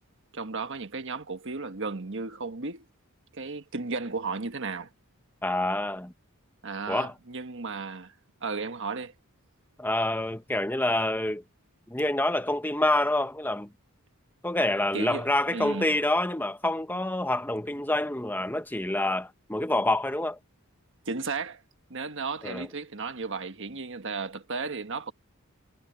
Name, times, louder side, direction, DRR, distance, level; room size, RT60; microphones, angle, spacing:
voice 1, 0.3-2.8 3.3-4.9 6.6-8.1 8.4-9.1 14.9-16.0 21.0-21.6 21.9-25.1, right 4 dB, 55° right, 1.4 m, -34 dB
voice 2, 5.4-6.1 6.9-7.1 9.8-11.4 11.9-13.7 14.4-20.4 22.4-22.7, left 1 dB, 10° left, 1.1 m, -27 dB
head